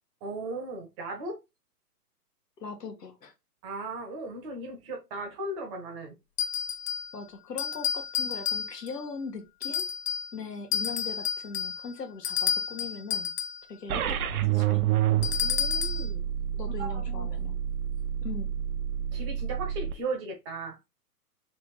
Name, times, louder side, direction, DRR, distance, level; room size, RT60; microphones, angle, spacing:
voice 1, 0.2-1.4 3.6-6.2 15.4-16.2 16.8-17.3 19.1-20.8, right 2 dB, 20° right, 0.8 m, -37 dB
voice 2, 2.6-3.3 7.1-9.9 10.3-13.3 13.7-14.8 16.5-17.6 18.2-18.5, left 5 dB, 85° left, 1.4 m, -40 dB
sound 1, 6.4-7.1 7.6-9.0 9.6-10.3 10.7-13.6 15.2-16.1, left 7 dB, 45° left, 0.5 m, -30 dB
sound 2, 13.9-19.9, right 11 dB, 65° right, 0.6 m, -29 dB
3.4 x 2.8 x 4.1 m
hypercardioid pair, 140°, 48 cm